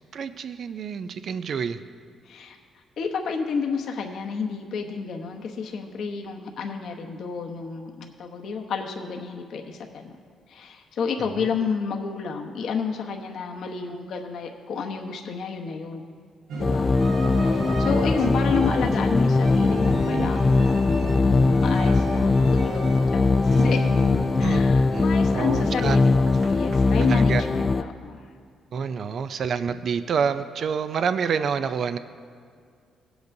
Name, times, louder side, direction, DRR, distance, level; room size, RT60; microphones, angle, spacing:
voice 1, 0.1-1.8 11.4-11.5 24.4-24.6 24.9-26.0 27.1-27.4 28.7-32.0, right 6 dB, 55° right, 11 dB, 0.4 m, -27 dB
voice 2, 2.3-2.6 3.0-10.1 10.5-16.0 16.6-17.0 17.4-21.0 21.6-23.9 24.4-28.2 29.7-29.8, left 5 dB, 70° left, 2 dB, 1.0 m, -30 dB
sound 1, 16.5-27.2, right 3 dB, 75° right, 1.2 m, -35 dB
sound 2, 16.6-27.8, left 3 dB, 30° left, 0.4 m, -21 dB
17.5 x 8.0 x 2.7 m, 2.2 s
cardioid pair, 90°, 0 cm